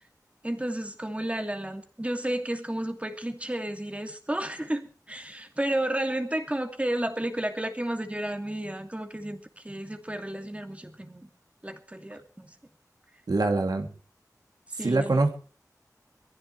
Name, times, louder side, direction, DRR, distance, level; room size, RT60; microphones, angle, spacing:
voice 1, 0.4-11.3 11.6-12.6 14.8-15.2, right 1 dB, 20° right, 6 dB, 2.5 m, -32 dB
voice 2, 13.3-13.9 14.8-15.3, right 2 dB, 75° right, 4 dB, 2.8 m, -24 dB
23.0 x 15.0 x 3.3 m, 0.40 s
wide cardioid pair, 65°, 7 cm